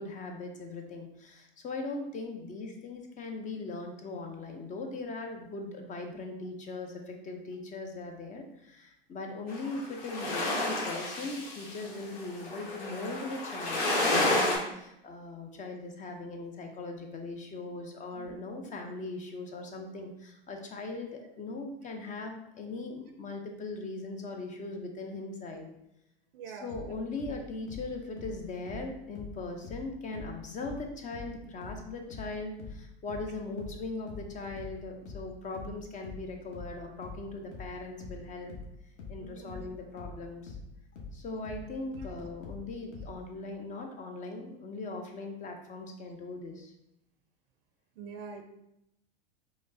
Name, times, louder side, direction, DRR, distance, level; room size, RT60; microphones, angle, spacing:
voice 1, 0.0-25.7 26.5-38.5 39.1-40.6 41.1-46.7, left 3 dB, 25° left, 4 dB, 0.5 m, -40 dB
sound 1, 9.5-14.6, left 2 dB, 80° left, 1.0 m, -30 dB
voice 2, 26.3-26.7 39.2-39.7 42.0-42.1 48.0-48.4, right 5 dB, 70° right, 5 dB, 0.5 m, -45 dB
sound 2, 26.7-29.9 30.1-43.2, left 3 dB, 50° left, 0.9 m, -44 dB
4.9 x 2.0 x 2.5 m, 0.81 s
hypercardioid pair, 95°, 29 cm